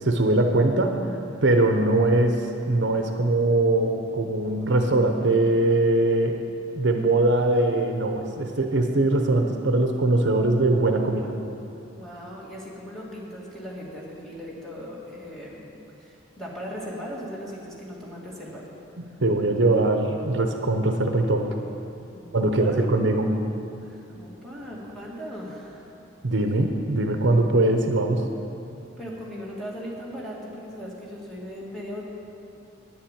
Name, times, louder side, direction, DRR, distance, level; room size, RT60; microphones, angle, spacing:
voice 1, 0.0-6.4 6.7-11.3 19.2-21.5 22.3-23.3 26.2-28.2, right 2 dB, 60° right, 4 dB, 0.8 m, -22 dB
voice 2, 11.9-18.7 19.1-19.2 22.1-22.9 23.8-25.9 29.0-32.0, equal, ahead, -6 dB, 2.1 m, -38 dB
10.0 x 7.3 x 8.9 m, 2.8 s
head